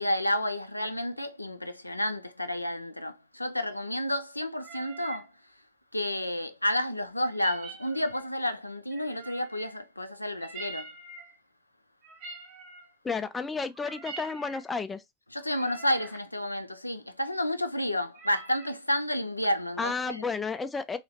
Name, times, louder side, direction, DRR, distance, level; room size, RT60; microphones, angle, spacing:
voice 1, 0.0-5.3 5.9-10.9 15.3-20.2, left 1 dB, 85° left, 0.4 m, -30 dB
sound 1, 4.6-5.3 7.2-8.3 8.9-9.8 10.4-11.4 12.0-12.9 13.6-14.7 15.4-16.2 18.1-18.8, right 4 dB, 40° right, 1.0 m, -45 dB
voice 2, 13.0-15.0 19.8-21.0, left 4 dB, 15° left, 0.4 m, -32 dB
3.2 x 2.9 x 2.7 m
figure-of-eight pair, 90°, 0 cm